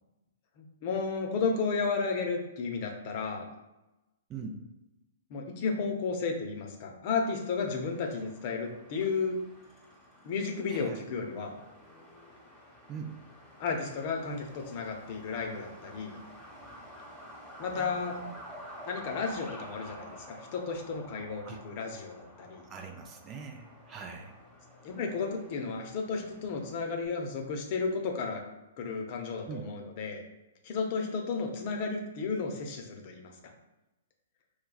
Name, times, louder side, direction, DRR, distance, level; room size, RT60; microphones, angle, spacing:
voice 1, 0.6-3.5 5.3-9.4 10.2-11.5 13.6-16.2 17.6-18.2 18.9-22.6 24.8-28.4 28.8-30.2 30.6-33.3, left 4 dB, 45° left, 2 dB, 0.6 m, -33 dB
voice 2, 4.3-4.6 10.7-11.0 12.9-13.2 17.7-18.3 21.4-21.6 22.7-24.3 29.5-29.7, right 5 dB, 25° right, 3 dB, 0.4 m, -42 dB
Truck, 7.1-27.1, equal, 5° right, 1.1 m, -50 dB
4.7 x 2.2 x 2.3 m, 1.0 s
figure-of-eight pair, 115°, 0 cm